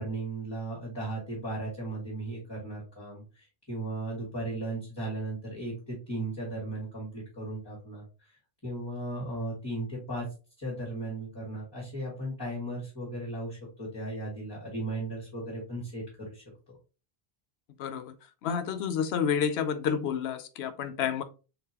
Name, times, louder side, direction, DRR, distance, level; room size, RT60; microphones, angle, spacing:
voice 1, 0.0-8.3 8.6-10.3 10.6-16.8, right 2 dB, 25° left, 1.5 m, -36 dB
voice 2, 17.8-18.1 18.4-21.2, left 7 dB, 80° left, 0.8 m, -29 dB
3.9 x 3.7 x 2.7 m
omnidirectional pair, 1.1 m